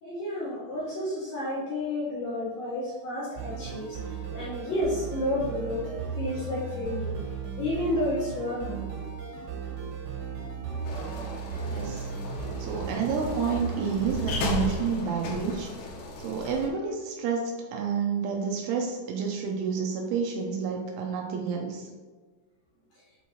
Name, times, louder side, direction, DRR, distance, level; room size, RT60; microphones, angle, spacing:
voice 1, 0.0-5.8 6.2-7.1 7.6-8.9 10.7-11.0 12.3-12.5, left 1 dB, 60° left, -9 dB, 2.5 m, -31 dB
sound 1, 3.4-14.4, right 5 dB, 70° right, 3.7 m, -36 dB
sound 2, 10.8-16.7, left 4 dB, 80° left, 3.3 m, -36 dB
voice 2, 11.7-12.1 12.6-15.7 16.2-21.9, right 6 dB, 85° right, 0 dB, 3.0 m, -29 dB
8.3 x 4.6 x 2.9 m, 1.4 s
omnidirectional pair, 5.8 m